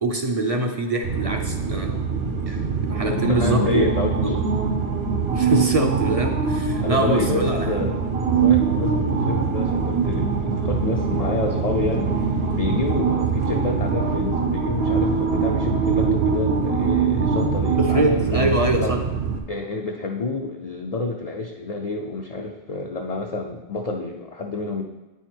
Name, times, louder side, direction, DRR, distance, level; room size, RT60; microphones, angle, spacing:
voice 1, 0.0-1.9 2.5-3.9 4.2-4.4 5.3-7.8 17.8-19.0, right 2 dB, 40° right, 4 dB, 0.6 m, -24 dB
sound 1, 1.0-19.4, right 5 dB, 65° right, 1.0 m, -23 dB
voice 2, 1.7-2.0 2.4-2.5 2.9-4.5 5.6-5.7 6.8-8.0 8.4-12.2 12.5-18.5 18.8-19.0 19.5-24.8, left 3 dB, 45° left, 1 dB, 0.5 m, -28 dB
8.9 x 4.7 x 4.5 m, 1.1 s
omnidirectional pair, 1.2 m